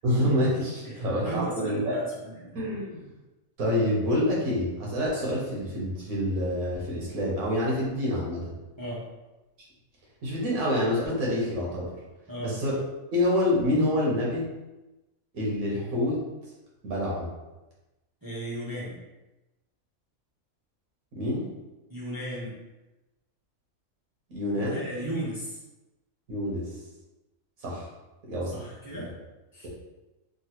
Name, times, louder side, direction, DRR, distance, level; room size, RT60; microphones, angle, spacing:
voice 1, 0.0-2.0 2.5-3.0 3.6-8.4 10.2-11.9 12.4-12.8 13.1-14.5 15.3-16.2 16.8-17.3 21.1-21.4 24.3-24.8 26.3-26.7 27.6-27.8 28.3-28.6, left 1 dB, 75° right, -4 dB, 1.5 m, -27 dB
voice 2, 0.8-2.5 8.8-9.0 12.3-12.6 18.2-19.0 21.9-22.6 24.5-25.6 28.5-29.1 29.5-29.7, right 1 dB, 30° right, -7 dB, 0.4 m, -35 dB
3.7 x 2.4 x 2.9 m, 1.0 s
omnidirectional pair, 1.5 m